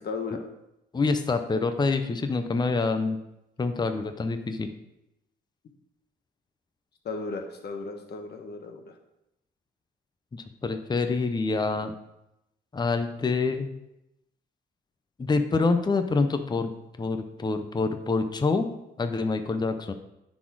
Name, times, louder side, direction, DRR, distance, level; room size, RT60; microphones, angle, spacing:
voice 1, 0.0-0.4 7.0-8.8, left 4 dB, 55° left, 4 dB, 1.4 m, -35 dB
voice 2, 0.9-3.2 3.6-4.7 10.3-11.9 12.7-13.7 15.2-16.7 17.0-18.7 19.0-19.9, left 3 dB, 20° left, 8 dB, 0.7 m, -26 dB
9.8 x 4.2 x 4.7 m, 0.88 s
cardioid pair, 90°, 20 cm